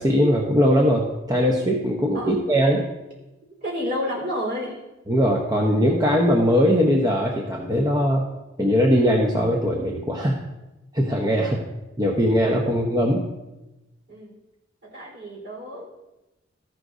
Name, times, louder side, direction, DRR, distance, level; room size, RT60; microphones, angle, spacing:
voice 1, 0.0-2.8 5.1-8.2 8.6-10.4 10.9-11.6 12.0-13.3, equal, 20° right, -2 dB, 0.9 m, -20 dB
voice 2, 3.6-4.8 11.4-11.6 14.1-14.3 14.9-15.8, equal, 55° right, -3 dB, 3.9 m, -30 dB
14.0 x 11.0 x 2.6 m, 1.0 s
head